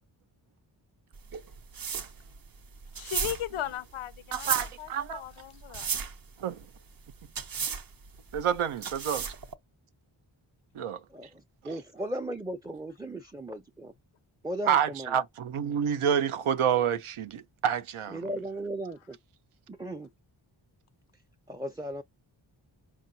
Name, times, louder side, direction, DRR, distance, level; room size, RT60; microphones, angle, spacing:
sound 1, 1.1-9.5, right 6 dB, 45° right, 0.6 m, -35 dB
voice 1, 2.9-5.9, left 12 dB, 85° left, 0.6 m, -37 dB
voice 2, 4.3-5.2 6.4-6.6 8.3-9.3 10.7-11.0 14.7-18.2, right 8 dB, 90° right, 0.6 m, -28 dB
voice 3, 11.1-13.9 14.4-15.2 18.1-19.2 19.7-20.1 21.5-22.0, right 1 dB, 10° right, 0.4 m, -36 dB
4.7 x 2.4 x 2.7 m
cardioid pair, 50°, 49 cm